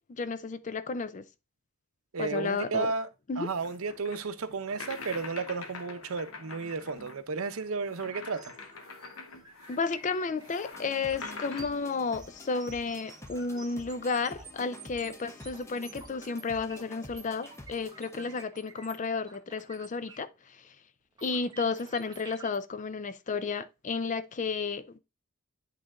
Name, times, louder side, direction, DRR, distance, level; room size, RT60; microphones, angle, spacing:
voice 1, 0.1-1.2 2.2-2.9 3.3-3.5 9.7-20.8 21.2-25.0, left 4 dB, 35° left, 0.4 m, -32 dB
voice 2, 2.1-3.1 3.4-8.5, right 4 dB, 85° right, 0.7 m, -33 dB
sound 1, 3.5-11.6, left 4 dB, 75° left, 1.0 m, -45 dB
sound 2, 8.3-20.4 20.7-20.8 21.2-22.6, right 4 dB, 20° right, 0.9 m, -51 dB
sound 3, 10.7-18.4, left 1 dB, 15° left, 0.9 m, -49 dB
8.6 x 3.3 x 3.7 m
head